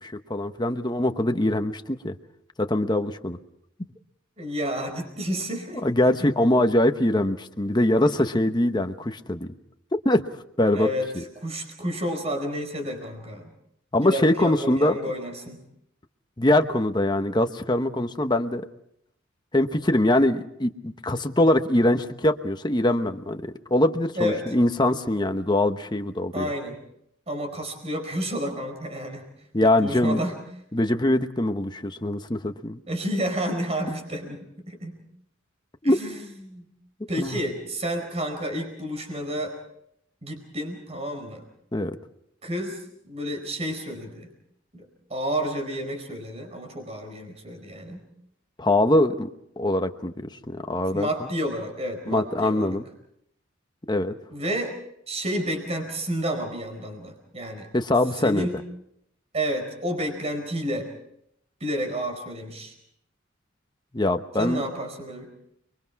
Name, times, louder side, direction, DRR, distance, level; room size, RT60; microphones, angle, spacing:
voice 1, 0.0-2.1 2.6-3.4 5.8-9.5 10.0-10.2 10.6-10.9 11.2-11.3 13.9-15.0 16.4-18.7 19.5-26.5 29.5-30.2 30.7-32.8 35.8-36.0 37.2-37.4 41.7-42.0 48.6-49.3 49.6-50.1 50.5-51.1 52.1-52.8 53.9-54.1 57.7-58.5 63.9-64.6, left 1 dB, 20° left, 7 dB, 1.1 m, -23 dB
voice 2, 4.4-5.8 10.7-11.1 11.4-13.5 14.0-15.6 24.1-24.5 26.3-26.8 27.3-29.3 29.6-30.4 32.9-35.0 35.8-36.7 37.1-39.6 40.2-41.4 42.4-44.3 44.7-48.1 50.9-52.8 54.3-54.8 55.1-57.7 58.2-58.6 59.3-60.9 61.6-62.7 64.4-65.3, equal, 30° right, 5 dB, 4.7 m, -30 dB
30.0 x 22.5 x 4.7 m, 0.74 s
head